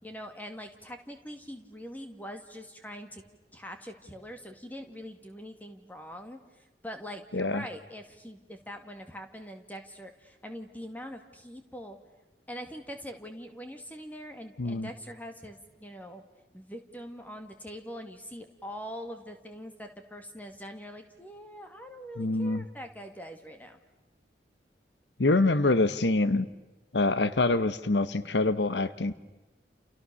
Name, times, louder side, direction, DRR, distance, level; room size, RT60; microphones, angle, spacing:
voice 1, 0.0-3.2 3.5-6.4 6.8-12.0 12.5-16.2 16.5-23.8, equal, 10° left, 5 dB, 2.3 m, -43 dB
voice 2, 22.2-22.6 25.2-26.4 26.9-29.1, left 2 dB, 85° left, 14 dB, 1.0 m, -25 dB
29.5 x 29.0 x 7.0 m, 1.1 s
head